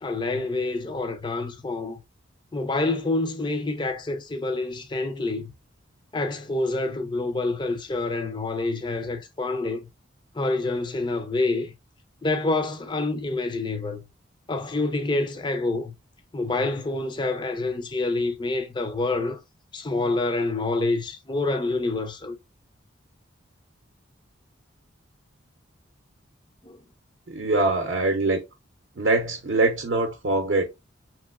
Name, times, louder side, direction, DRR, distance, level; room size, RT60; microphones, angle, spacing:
voice 1, 0.0-2.0 2.5-5.5 6.1-9.8 10.4-11.7 12.2-14.0 14.5-15.9 16.3-19.4 19.7-22.4 26.6-26.8, left 2 dB, 25° left, 0.4 m, -27 dB
voice 2, 27.3-28.4 29.0-30.6, right 2 dB, 60° right, 0.6 m, -23 dB
3.0 x 2.9 x 2.3 m
head